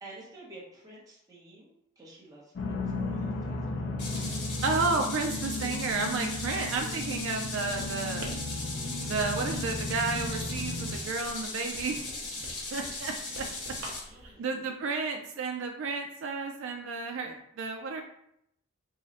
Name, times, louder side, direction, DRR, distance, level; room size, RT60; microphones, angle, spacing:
voice 1, 0.0-4.2 14.0-15.0, right 2 dB, 15° right, -5 dB, 0.8 m, -51 dB
sound 1, 2.6-11.0, left 2 dB, 55° left, 0.5 m, -35 dB
sound 2, 4.0-14.0, left 2 dB, 85° left, 1.3 m, -38 dB
voice 2, 4.6-8.3 9.0-12.0 12.7-13.5 14.4-18.0, right 4 dB, 60° right, 3 dB, 0.3 m, -32 dB
Writing, 5.7-14.3, right 1 dB, 85° right, 0.8 m, -48 dB
3.7 x 2.0 x 4.0 m, 0.75 s
head